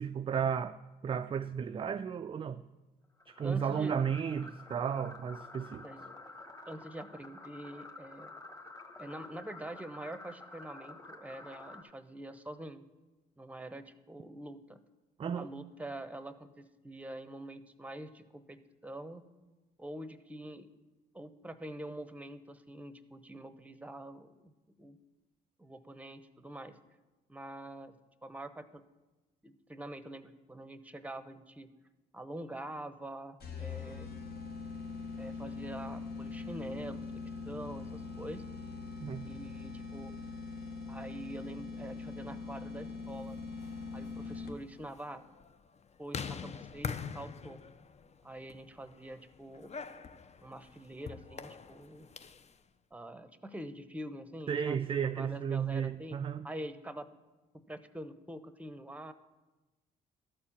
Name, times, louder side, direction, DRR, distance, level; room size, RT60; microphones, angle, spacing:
voice 1, 0.0-2.6 3.3-5.8 15.2-15.5 39.0-39.3 54.5-56.5, right 7 dB, 30° right, 0.3 m, -34 dB
sound 1, 3.2-11.8, left 2 dB, 20° left, 1.6 m, -50 dB
voice 2, 3.4-3.9 5.8-6.1 6.6-8.3 9.0-12.8 13.4-14.8 15.3-19.2 19.8-20.7 21.1-24.5 24.8-25.0 25.6-26.8 27.3-27.9 28.2-28.8 29.4-31.7 32.1-34.1 35.2-38.4 39.3-40.1 40.9-43.4 43.9-45.2 46.0-47.6 48.2-49.7 50.4-52.1 52.9-56.2 56.4-57.1 57.7-59.1, right 1 dB, 5° right, 0.8 m, -45 dB
sound 2, 33.4-44.8, left 4 dB, 55° left, 1.4 m, -42 dB
sound 3, 43.4-52.5, left 6 dB, 35° left, 0.6 m, -45 dB
12.5 x 4.3 x 7.3 m
supercardioid pair, 65°, 19 cm